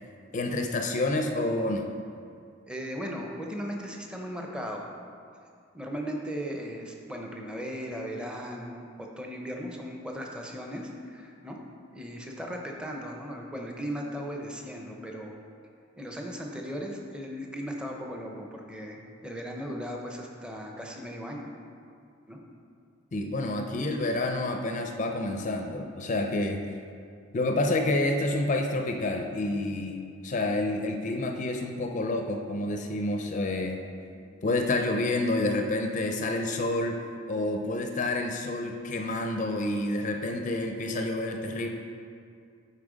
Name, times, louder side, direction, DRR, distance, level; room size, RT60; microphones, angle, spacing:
voice 1, 0.3-1.9 23.1-26.6 27.3-33.8 34.4-37.0 37.3-41.7, left 2 dB, 40° left, 4 dB, 0.5 m, -28 dB
voice 2, 2.7-4.9 5.7-11.6 11.9-15.3 16.0-21.5 22.3-22.4, equal, 5° right, 0 dB, 0.7 m, -37 dB
8.6 x 4.3 x 5.0 m, 2.4 s
head